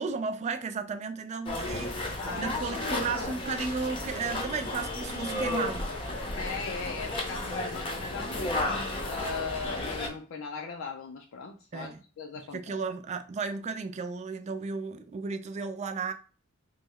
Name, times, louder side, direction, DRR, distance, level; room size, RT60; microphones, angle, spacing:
voice 1, 0.0-5.9 11.7-12.0 12.5-16.1, right 4 dB, 35° right, 0.3 m, -34 dB
sound 1, 1.5-10.1, left 2 dB, 25° left, 0.6 m, -33 dB
voice 2, 2.2-3.3 6.3-8.5 9.0-12.8, left 5 dB, 70° left, 0.4 m, -39 dB
3.1 x 2.1 x 3.5 m
head